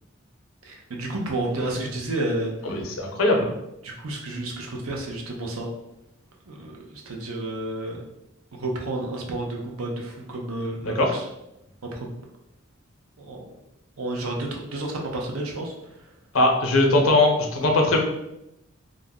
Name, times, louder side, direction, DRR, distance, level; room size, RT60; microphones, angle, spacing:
voice 1, 0.6-2.5 3.8-5.7 6.5-8.0 8.5-11.2 11.8-12.2 13.2-13.6 14.0-15.7, right 2 dB, 85° right, 0 dB, 0.6 m, -31 dB
voice 2, 2.7-3.5 10.8-11.1 16.3-18.0, left 2 dB, 80° left, 2 dB, 0.6 m, -20 dB
2.5 x 2.0 x 3.5 m, 0.86 s
head